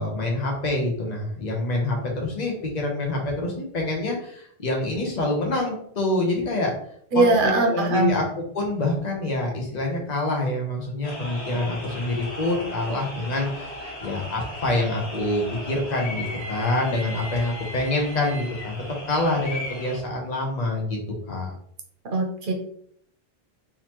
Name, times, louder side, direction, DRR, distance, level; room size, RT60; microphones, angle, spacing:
voice 1, 0.0-6.7 7.1-8.2 8.5-13.8 14.0-18.8 19.1-21.0 21.3-21.5, left 2 dB, 45° left, -1 dB, 1.0 m, -26 dB
voice 2, 7.1-8.1 22.1-22.5, right 3 dB, 55° right, 2 dB, 0.9 m, -21 dB
sound 1, 11.0-20.0, left 1 dB, 80° left, 1.5 m, -36 dB
3.9 x 2.8 x 3.0 m, 0.65 s
omnidirectional pair, 1.1 m